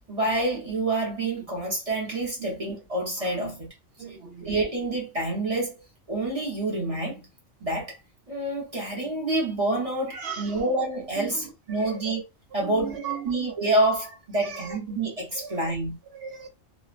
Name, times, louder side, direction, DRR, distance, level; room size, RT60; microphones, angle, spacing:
voice 1, 0.1-3.7 4.4-5.7 6.1-7.3 7.6-8.0 8.3-12.2 12.5-13.0 13.2-16.0, right 2 dB, 30° right, 1.0 m, -27 dB
voice 2, 4.0-4.5 10.1-10.6 11.2-12.1 12.6-13.3 14.4-14.8 15.3-15.7 16.1-16.5, right 7 dB, 60° right, 0.8 m, -38 dB
3.2 x 2.2 x 2.5 m
omnidirectional pair, 1.3 m